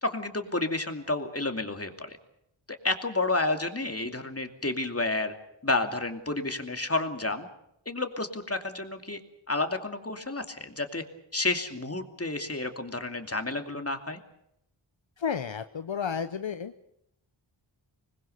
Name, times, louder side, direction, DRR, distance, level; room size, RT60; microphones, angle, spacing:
voice 1, 0.0-2.2 2.8-5.3 5.6-7.5 7.9-9.2 9.5-11.0 11.3-14.2, left 2 dB, 30° left, 6 dB, 2.6 m, -30 dB
voice 2, 15.2-16.7, left 7 dB, 70° left, 10 dB, 0.9 m, -32 dB
25.5 x 20.5 x 6.7 m, 0.79 s
wide cardioid pair, 50°, 47 cm